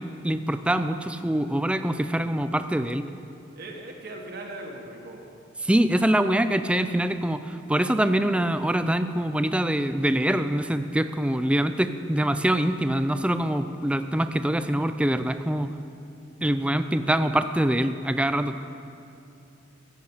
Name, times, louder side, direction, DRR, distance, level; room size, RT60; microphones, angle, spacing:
voice 1, 0.0-3.0 5.6-15.7 16.4-18.6, right 1 dB, 5° right, 10 dB, 0.4 m, -24 dB
voice 2, 3.6-5.2, right 2 dB, 50° right, 0 dB, 1.5 m, -39 dB
15.5 x 7.6 x 7.1 m, 2.7 s
head